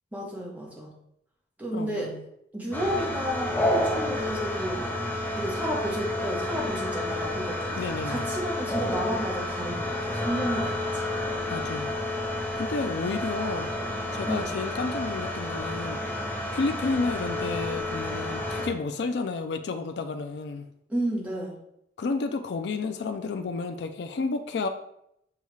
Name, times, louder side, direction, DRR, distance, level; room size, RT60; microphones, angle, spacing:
voice 1, 0.1-0.9 1.6-2.1 2.5-4.8 5.4-11.2 14.2-14.5 20.9-21.5, equal, 10° right, 1.0 m, -32 dB
voice 2, 1.7-2.2 7.8-8.2 11.5-11.9 12.6-13.7 14.1-16.0 16.5-20.7 22.0-24.7, left 4 dB, 80° left, 0.4 m, -31 dB
sound 1, 2.7-18.7, left 1 dB, 10° left, 0.7 m, -30 dB
6.7 x 2.4 x 3.1 m
head